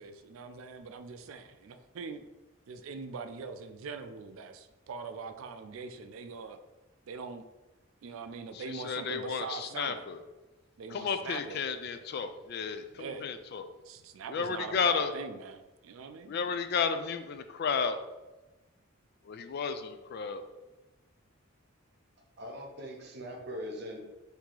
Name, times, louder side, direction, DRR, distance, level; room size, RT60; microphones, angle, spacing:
voice 1, 0.0-2.2 2.7-6.6 7.1-7.5 8.0-10.0 10.8-11.6 13.0-13.3 13.8-16.5, right 5 dB, 90° right, 8 dB, 0.4 m, -42 dB
voice 2, 8.5-10.2 10.9-13.6 14.3-15.1 16.3-18.0 19.3-20.4, left 6 dB, 55° left, 9 dB, 0.4 m, -32 dB
voice 3, 22.4-24.0, equal, 55° right, 1 dB, 0.9 m, -41 dB
4.6 x 2.7 x 3.8 m, 1.1 s
head